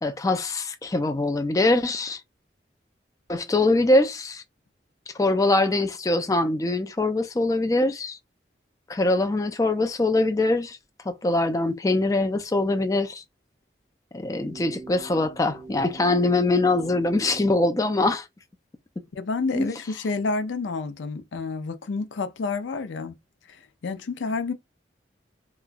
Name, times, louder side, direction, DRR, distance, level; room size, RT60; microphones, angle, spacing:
voice 1, 0.0-2.2 3.3-4.4 5.2-8.2 8.9-10.8 11.1-13.2 14.1-18.3 19.5-19.7, left 2 dB, 20° left, 0.3 m, -23 dB
sound 1, 14.3-17.5, right 4 dB, 85° right, 1.4 m, -43 dB
voice 2, 19.1-23.2 23.5-24.5, left 4 dB, 85° left, 0.5 m, -29 dB
2.9 x 2.3 x 2.4 m
head